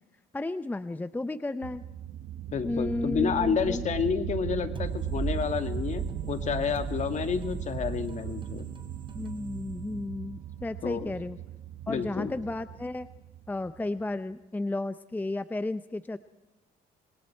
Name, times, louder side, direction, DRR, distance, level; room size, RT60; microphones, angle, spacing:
voice 1, 0.3-1.8 2.6-3.8 9.1-11.4 11.9-13.1 13.5-16.2, left 2 dB, 10° left, 13 dB, 0.6 m, -33 dB
sound 1, 1.6-14.0, right 12 dB, 75° right, 1.0 m, -39 dB
voice 2, 2.5-8.7 10.8-11.1 11.9-12.3, left 6 dB, 45° left, 8 dB, 2.1 m, -30 dB
sound 2, 4.7-10.4, right 4 dB, 30° right, 2.8 m, -38 dB
27.0 x 21.5 x 4.4 m, 1.0 s
cardioid pair, 110°, 17 cm